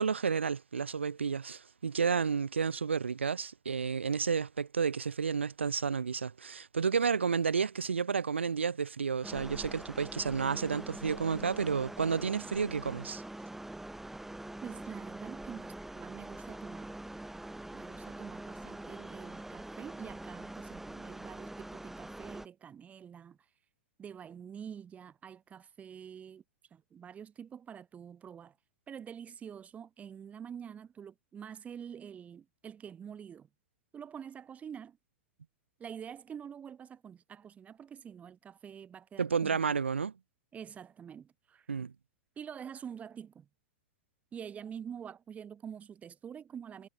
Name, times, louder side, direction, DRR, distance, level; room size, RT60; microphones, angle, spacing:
voice 1, 0.0-13.2 39.2-40.1 41.7-41.9, right 6 dB, 80° right, 1.2 m, -31 dB
sound 1, 9.2-22.5, right 1 dB, 5° right, 1.5 m, -44 dB
voice 2, 14.6-16.9 17.7-23.4 24.0-26.4 26.7-28.5 28.9-33.5 33.9-35.0 35.8-39.6 40.5-41.7 42.4-43.5 44.3-46.9, right 8 dB, 20° right, 1.6 m, -46 dB
figure-of-eight pair, 95°, 6 cm